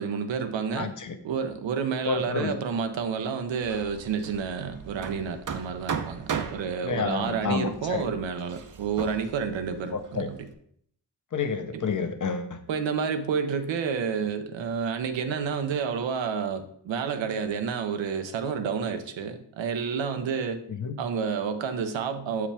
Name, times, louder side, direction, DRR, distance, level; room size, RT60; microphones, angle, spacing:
voice 1, 0.0-0.9 1.2-10.4 11.7-11.8 12.7-20.6 21.0-22.5, right 6 dB, 85° right, 0.8 m, -30 dB
voice 2, 0.7-1.2 2.1-2.6 6.8-8.1 9.9-10.3 11.3-12.6 20.8-21.0, left 5 dB, 45° left, 0.9 m, -29 dB
Hammer, 3.6-10.5, right 6 dB, 45° right, 0.7 m, -37 dB
7.1 x 4.9 x 3.4 m
cardioid pair, 60°, 44 cm